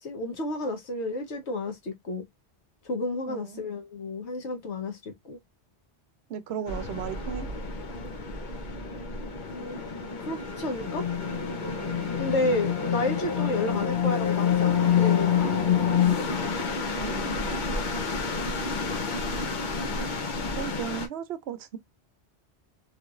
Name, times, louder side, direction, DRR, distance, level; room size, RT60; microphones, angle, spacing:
voice 1, 0.0-2.2 2.8-5.4 9.5-9.8 10.2-11.0 12.2-15.6, left 2 dB, 90° left, 1.4 m, -31 dB
voice 2, 3.3-3.7 6.3-7.5 13.6-13.9 17.0-17.7 20.2-21.8, right 8 dB, 70° right, 0.8 m, -36 dB
sound 1, 6.7-21.1, left 6 dB, 50° left, 0.8 m, -28 dB
sound 2, 8.9-16.1, left 2 dB, 20° left, 0.5 m, -45 dB
3.2 x 2.9 x 2.4 m
omnidirectional pair, 1.1 m